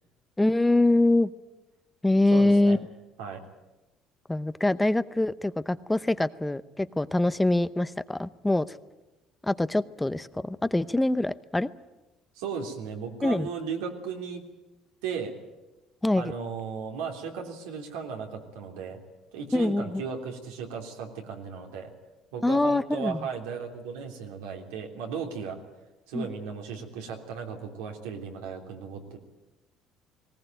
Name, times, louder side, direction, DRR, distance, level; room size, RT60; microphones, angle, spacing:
voice 1, 0.4-1.3 2.0-2.8 4.3-8.6 9.4-11.7 13.2-13.5 16.0-16.2 19.5-20.0 22.4-23.2 26.1-26.3, left 2 dB, 10° left, 14 dB, 0.8 m, -24 dB
voice 2, 2.3-2.8 3.2-3.4 12.4-14.4 15.0-15.3 16.2-19.0 19.3-21.9 22.3-25.6 26.1-29.2, right 6 dB, 90° right, 2 dB, 3.3 m, -36 dB
19.5 x 18.0 x 9.2 m, 1.0 s
supercardioid pair, 85°, 0 cm